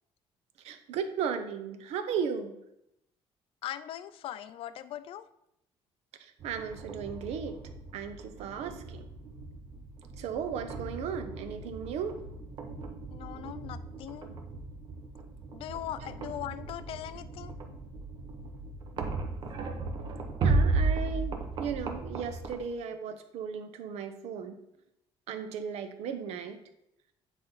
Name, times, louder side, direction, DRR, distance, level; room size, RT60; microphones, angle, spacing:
voice 1, 0.6-2.6 6.2-7.6 7.9-9.1 10.2-12.1 20.4-24.6 25.3-26.6, right 7 dB, 80° right, 8 dB, 0.8 m, -36 dB
voice 2, 3.6-5.3 13.1-14.3 15.5-17.5, left 12 dB, 55° left, 13 dB, 0.4 m, -40 dB
sound 1, 6.4-22.6, right 3 dB, 45° right, 0.9 m, -35 dB
9.2 x 4.1 x 4.0 m, 0.81 s
cardioid pair, 160°, 11 cm